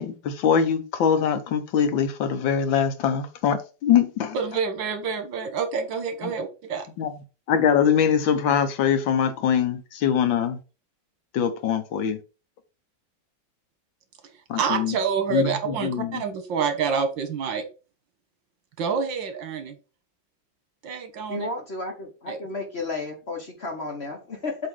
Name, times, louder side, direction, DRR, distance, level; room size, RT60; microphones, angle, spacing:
voice 1, 0.0-4.4 6.2-6.3 7.0-7.1 7.5-10.6 11.3-12.2 14.5-15.0 15.3-16.2, left 8 dB, 90° left, 1.8 m, -23 dB
voice 2, 4.3-6.9 14.5-17.6 18.8-19.8 20.8-21.5 22.3-22.4, right 5 dB, 80° right, 1.9 m, -27 dB
voice 3, 21.3-24.6, left 3 dB, 40° left, 1.2 m, -33 dB
7.5 x 3.1 x 4.7 m
omnidirectional pair, 2.0 m